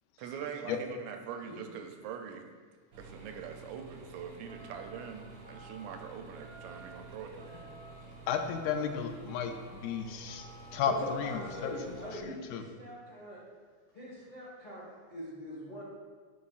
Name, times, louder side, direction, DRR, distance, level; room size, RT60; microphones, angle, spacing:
voice 1, 0.2-2.5 3.0-7.5, right 7 dB, 85° right, 5 dB, 1.9 m, -43 dB
sound 1, 2.9-12.2, right 2 dB, 60° right, 1.5 m, -51 dB
sound 2, 4.5-5.0 5.4-6.0 6.4-7.0 7.4-7.9 8.3-8.9 9.3-9.8 10.3-10.8 11.2-11.8, right 2 dB, 40° left, 1.9 m, -53 dB
voice 2, 8.3-10.4 10.7-12.6, left 7 dB, 85° left, 6 dB, 2.0 m, -34 dB
voice 3, 10.8-13.4 13.9-15.8, left 1 dB, 65° left, -7 dB, 0.4 m, -42 dB
10.5 x 4.1 x 2.4 m, 1.5 s
omnidirectional pair, 3.3 m